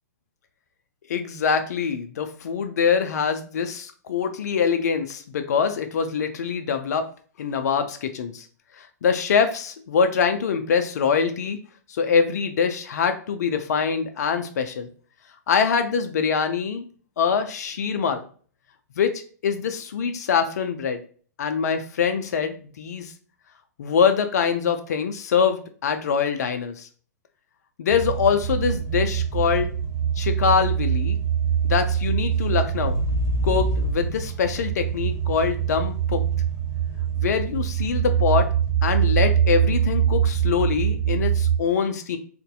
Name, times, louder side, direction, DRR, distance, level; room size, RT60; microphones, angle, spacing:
voice 1, 1.1-7.1 7.4-8.5 8.8-11.6 11.9-14.9 15.5-16.8 17.2-18.2 19.0-19.1 19.4-21.0 21.4-23.1 23.8-26.9 27.8-29.7 30.2-31.2 31.6-33.0 33.4-36.2 37.1-38.5 38.8-42.2, left 6 dB, 70° left, 8 dB, 0.4 m, -24 dB
sound 1, 27.9-41.6, right 8 dB, 35° right, 0.9 m, -24 dB
2.6 x 2.1 x 2.3 m, 0.43 s
hypercardioid pair, 120°, 9 cm